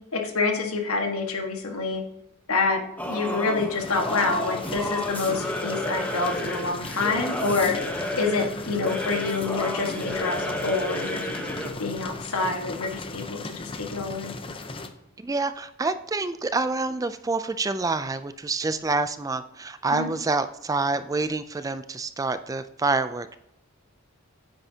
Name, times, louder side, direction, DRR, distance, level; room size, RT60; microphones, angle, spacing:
voice 1, 0.1-2.0 2.5-7.8 8.2-11.2 11.8-14.4 19.9-20.1, left 3 dB, 85° left, 3 dB, 1.6 m, -27 dB
Singing / Musical instrument, 3.0-11.8, left 1 dB, 5° left, 1.0 m, -31 dB
sound 1, 3.8-14.9, left 3 dB, 25° left, 0.6 m, -38 dB
voice 2, 15.2-23.3, right 3 dB, 15° right, 12 dB, 0.3 m, -27 dB
9.0 x 9.0 x 2.8 m, 0.82 s
head